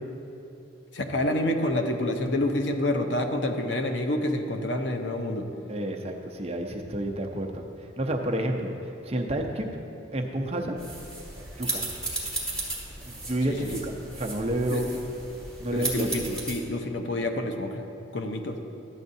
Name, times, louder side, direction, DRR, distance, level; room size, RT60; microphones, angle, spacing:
voice 1, 0.9-5.5 13.5-13.7 14.7-14.8 15.7-17.8 18.1-18.6, left 1 dB, 65° left, 5 dB, 0.7 m, -28 dB
voice 2, 5.7-9.7 10.1-10.7 11.6-11.8 13.1-14.9 15.6-16.4, right 1 dB, 30° right, 2 dB, 0.6 m, -30 dB
sound 1, 10.8-16.6, right 2 dB, 5° left, 1.9 m, -35 dB
12.5 x 8.5 x 2.7 m, 2.7 s
head